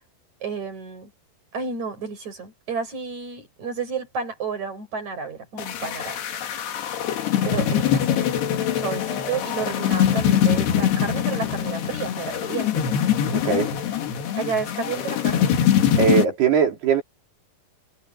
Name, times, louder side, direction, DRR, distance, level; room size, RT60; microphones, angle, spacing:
voice 1, 0.4-1.1 1.5-6.2 7.4-12.8 14.4-15.5, right 5 dB, 45° right, 8.1 m, -31 dB
sound 1, 5.6-16.2, left 9 dB, 85° left, 4.3 m, -23 dB
voice 2, 13.4-13.8 16.0-17.0, right 7 dB, 80° right, 5.7 m, -20 dB
omnidirectional pair, 4.6 m